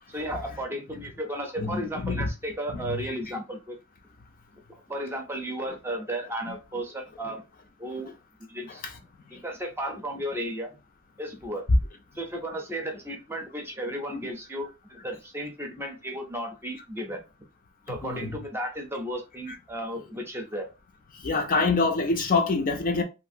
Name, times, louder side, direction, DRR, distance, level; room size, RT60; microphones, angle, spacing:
voice 1, 0.1-3.8 4.9-7.4 7.8-8.1 8.5-8.8 9.3-10.7 11.2-11.6 12.2-17.2 17.9-20.7, right 1 dB, 10° right, 0.6 m, -34 dB
voice 2, 1.6-2.3 2.7-3.1 8.8-8.9 9.3-9.4 14.1-14.2 18.0-18.3 21.2-23.0, left 3 dB, 40° left, 0.5 m, -26 dB
2.8 x 2.5 x 2.5 m
head